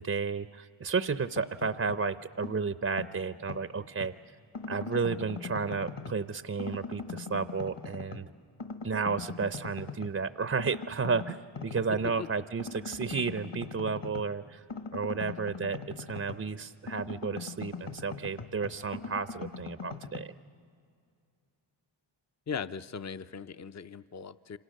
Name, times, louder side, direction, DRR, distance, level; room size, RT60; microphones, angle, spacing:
voice 1, 0.0-4.1 4.7-8.3 8.8-14.6 14.9-20.3, right 5 dB, 30° right, 14 dB, 0.6 m, -32 dB
sound 1, 1.1-2.1 2.4-4.2 4.5-6.3 6.6-8.3 8.6-10.2 10.6-12.2 12.6-16.6 16.9-20.2, left 4 dB, 55° left, 1.7 m, -41 dB
voice 2, 22.5-24.6, left 6 dB, 35° left, 12 dB, 0.6 m, -39 dB
28.0 x 25.5 x 6.5 m, 2.3 s
cardioid pair, 55°, 49 cm